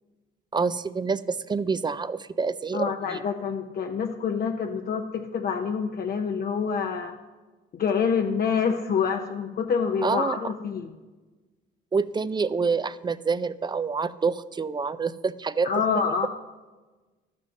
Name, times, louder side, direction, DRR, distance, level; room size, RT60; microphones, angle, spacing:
voice 1, 0.5-3.2 10.0-10.4 11.9-15.7, right 5 dB, 20° right, 16 dB, 0.3 m, -27 dB
voice 2, 2.7-7.2 7.7-10.9 15.6-16.3, left 6 dB, 50° left, 4 dB, 0.6 m, -27 dB
12.0 x 5.3 x 6.5 m, 1.3 s
cardioid pair, 90°, 20 cm